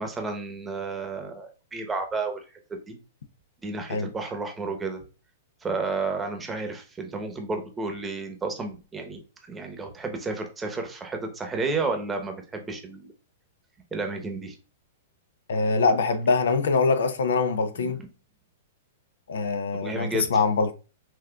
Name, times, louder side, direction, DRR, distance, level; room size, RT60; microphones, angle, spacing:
voice 1, 0.0-2.4 2.9-3.0 3.6-5.0 5.6-9.2 9.5-13.1 13.9-14.6 17.8-17.9 19.8-20.4, right 3 dB, 15° right, 0.9 m, -31 dB
voice 2, 15.5-18.0 19.3-20.7, left 4 dB, 80° left, 0.6 m, -23 dB
6.0 x 2.4 x 2.3 m
hypercardioid pair, 125°, 0 cm